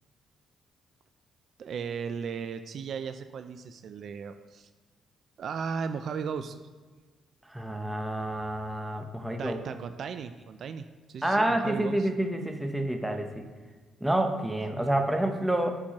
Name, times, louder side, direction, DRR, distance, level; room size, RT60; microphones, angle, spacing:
voice 1, 1.6-4.7 5.4-6.6 9.4-12.1, right 6 dB, 60° right, 9 dB, 0.3 m, -36 dB
voice 2, 7.5-9.6 11.2-13.4 14.0-15.8, right 1 dB, 5° right, 4 dB, 0.7 m, -28 dB
8.5 x 4.4 x 2.9 m, 1.4 s
cardioid pair, 90°, 0 cm